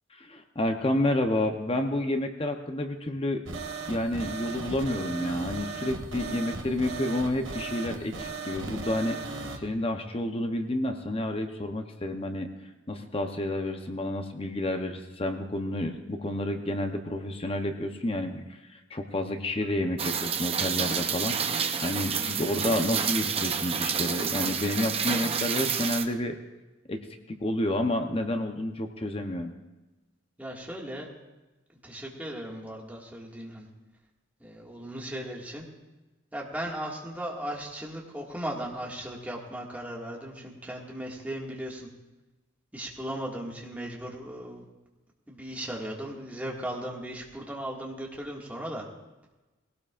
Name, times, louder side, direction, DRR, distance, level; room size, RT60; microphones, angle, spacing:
voice 1, 0.1-3.4 3.9-12.5 12.9-26.4 26.9-27.0 27.3-29.5, left 1 dB, 30° left, 5 dB, 0.8 m, -30 dB
sound 1, 3.5-9.6, right 4 dB, 70° right, 1.3 m, -37 dB
Rain, 20.0-26.0, right 6 dB, 30° right, 0.7 m, -29 dB
voice 2, 22.2-22.6 30.4-31.1 31.8-33.7 34.4-35.7 36.3-41.9 42.7-44.6 45.3-48.9, right 1 dB, 10° right, -3 dB, 1.9 m, -37 dB
20.0 x 17.5 x 2.5 m, 1.1 s
head